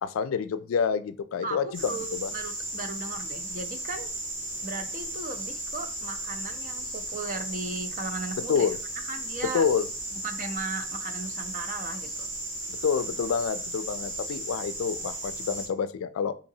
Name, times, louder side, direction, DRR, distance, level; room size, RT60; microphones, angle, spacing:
voice 1, 0.0-2.3 8.5-8.8 9.5-9.8 12.8-16.3, left 6 dB, 85° left, 12 dB, 0.3 m, -28 dB
voice 2, 1.4-4.1 4.6-9.7 10.2-12.3, right 3 dB, 40° right, 8 dB, 0.4 m, -37 dB
sound 1, 1.7-15.7, right 1 dB, 90° right, 1.7 m, -35 dB
3.9 x 2.8 x 2.7 m, 0.37 s
head